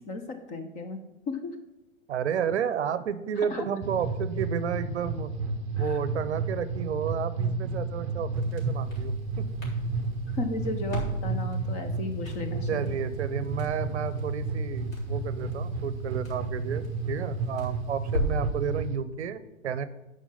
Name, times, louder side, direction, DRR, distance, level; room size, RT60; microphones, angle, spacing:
voice 1, 0.5-1.0 1.3-1.5 3.5-3.7 5.8-6.0 10.3-12.9, left 2 dB, 20° left, 7 dB, 0.6 m, -34 dB
voice 2, 2.1-5.3 5.8-9.5 12.7-19.8, right 8 dB, 55° right, 14 dB, 0.7 m, -31 dB
sound 1, 3.8-19.0, right 3 dB, 20° right, 0.7 m, -32 dB
Crackle, 8.3-18.6, equal, 70° left, 4.0 m, -38 dB
11.5 x 4.8 x 5.8 m, 0.96 s
figure-of-eight pair, 110°, 41 cm